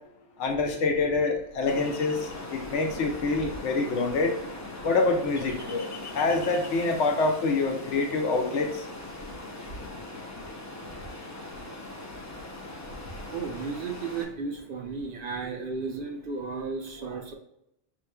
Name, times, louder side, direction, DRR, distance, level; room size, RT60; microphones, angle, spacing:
voice 1, 0.4-4.3 4.8-5.9 6.1-8.8, left 3 dB, 85° left, 4 dB, 1.1 m, -26 dB
Ocean, 1.7-14.2, left 2 dB, 25° left, 0.4 m, -40 dB
voice 2, 13.3-17.3, right 4 dB, 55° right, 2 dB, 0.8 m, -34 dB
6.5 x 3.1 x 2.2 m, 0.78 s
omnidirectional pair, 1.2 m